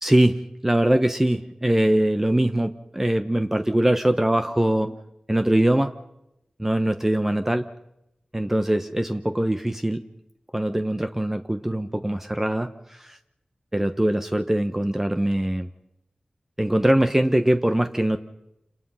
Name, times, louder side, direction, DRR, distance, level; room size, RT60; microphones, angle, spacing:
voice 1, 0.0-5.0 5.3-5.9 6.6-7.6 8.3-10.0 10.5-13.2 13.7-15.7 16.6-18.2, right 1 dB, 15° right, 7 dB, 1.0 m, -22 dB
28.0 x 20.0 x 5.7 m, 0.86 s
wide cardioid pair, 65°, 2 cm